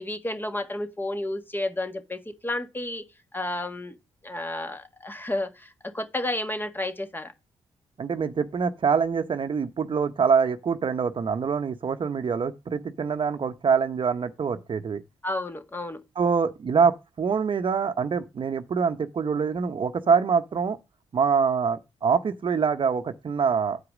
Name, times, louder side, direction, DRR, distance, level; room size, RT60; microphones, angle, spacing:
voice 1, 0.0-3.0 3.3-4.0 4.2-7.3 15.2-16.0, left 1 dB, 20° left, 1.7 m, -31 dB
voice 2, 8.0-15.0 16.2-20.8 21.1-23.8, right 6 dB, 50° right, 0.9 m, -25 dB
8.2 x 4.8 x 6.2 m
cardioid pair, 65°, 11 cm